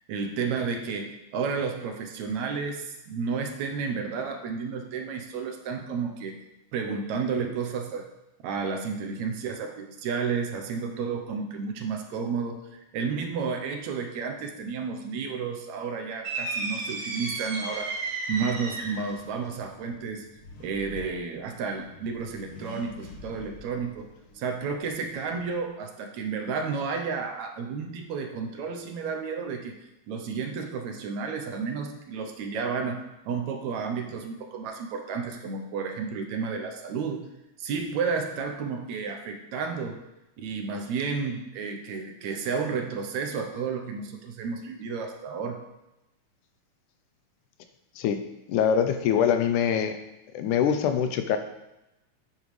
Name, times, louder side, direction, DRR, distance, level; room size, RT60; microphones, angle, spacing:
voice 1, 0.1-6.4 6.7-8.1 8.4-18.0 18.3-20.3 20.6-24.1 24.4-29.8 30.1-37.2 37.6-40.0 40.4-45.6, right 5 dB, 70° right, 4 dB, 2.1 m, -32 dB
sound 1, 16.2-19.1, right 3 dB, 55° right, 2.3 m, -33 dB
Accelerating revving vroom, 18.3-25.7, left 3 dB, 55° left, 1.9 m, -48 dB
voice 2, 48.5-50.0 50.3-51.4, left 8 dB, 85° left, 8 dB, 2.2 m, -23 dB
9.2 x 8.6 x 3.3 m, 0.93 s
omnidirectional pair, 3.5 m